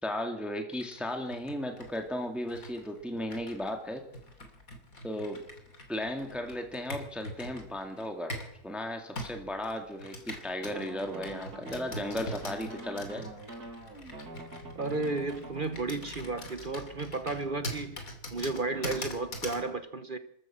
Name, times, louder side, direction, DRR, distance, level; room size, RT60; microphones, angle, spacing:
voice 1, 0.0-4.0 5.0-5.4 5.9-8.4 8.6-13.3, left 1 dB, ahead, 2.0 m, -35 dB
Computer keyboard, 0.7-8.6 9.2-19.7, left 1 dB, 65° left, 3.2 m, -43 dB
sound 1, 10.6-15.6, right 2 dB, 85° right, 3.4 m, -45 dB
voice 2, 14.7-20.2, right 3 dB, 40° right, 1.0 m, -33 dB
27.0 x 13.5 x 7.4 m
omnidirectional pair, 1.6 m